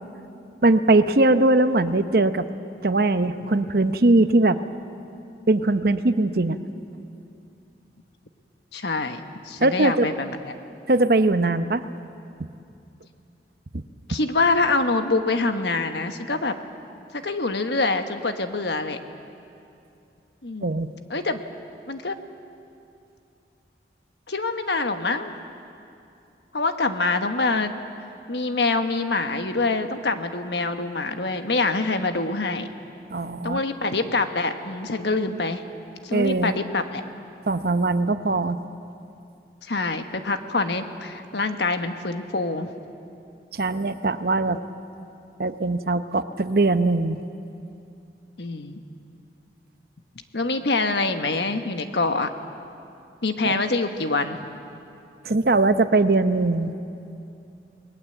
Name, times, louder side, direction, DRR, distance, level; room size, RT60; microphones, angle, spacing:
voice 1, 0.6-2.5 2.8-4.6 5.5-6.6 9.6-10.1 10.9-11.8 20.6-20.9 33.1-33.6 36.1-36.6 37.5-38.6 43.5-44.6 45.4-47.2 53.4-53.6 55.2-56.7, right 2 dB, 55° right, 11 dB, 0.8 m, -20 dB
voice 2, 8.7-10.4 14.1-16.5 17.1-19.0 20.4-20.7 21.1-21.4 21.9-22.1 24.3-25.3 26.5-27.7 28.3-32.7 33.4-35.6 36.0-37.0 39.6-42.7 48.4-48.8 50.3-52.3 53.2-54.4, left 3 dB, 70° left, 7 dB, 1.3 m, -25 dB
28.0 x 20.5 x 7.9 m, 2.7 s
head